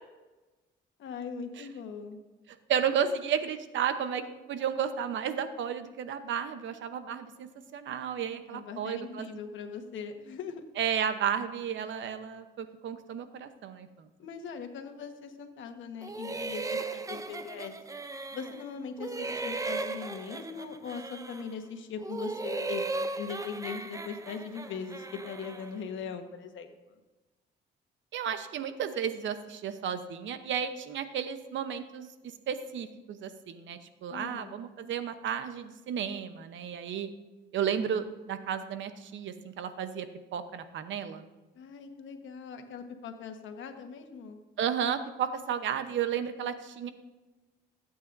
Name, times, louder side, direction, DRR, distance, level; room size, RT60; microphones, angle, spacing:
voice 1, 1.0-2.2 8.5-10.6 14.2-17.7 18.3-22.8 23.2-27.0 34.1-34.6 41.5-44.4, left 5 dB, 75° left, 6 dB, 1.3 m, -40 dB
voice 2, 2.7-4.2 4.5-9.4 10.8-14.1 28.1-32.1 32.5-37.1 37.5-40.1 40.3-41.2 44.6-46.9, right 8 dB, 70° right, 10 dB, 0.9 m, -33 dB
sound 1, 16.0-18.7 19.0-21.6 22.0-25.7, right 3 dB, 15° right, 0.6 m, -37 dB
16.0 x 8.6 x 2.6 m, 1.2 s
cardioid pair, 90°, 20 cm